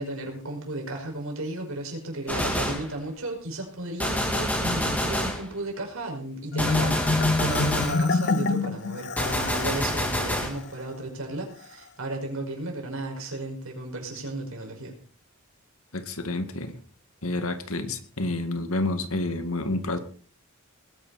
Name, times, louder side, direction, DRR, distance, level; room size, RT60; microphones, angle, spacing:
voice 1, 0.0-14.9, right 2 dB, 70° right, 1 dB, 5.7 m, -34 dB
Gunshot gunfire, 2.3-2.9 4.0-5.5 6.6-8.0 9.2-10.6, left 1 dB, 5° left, 3.1 m, -27 dB
Marimba xylophone, 6.5-9.9, left 3 dB, 45° left, 0.7 m, -26 dB
voice 2, 15.9-16.8 17.2-20.0, left 2 dB, 75° left, 8 dB, 2.0 m, -29 dB
20.5 x 11.0 x 4.3 m, 0.43 s
head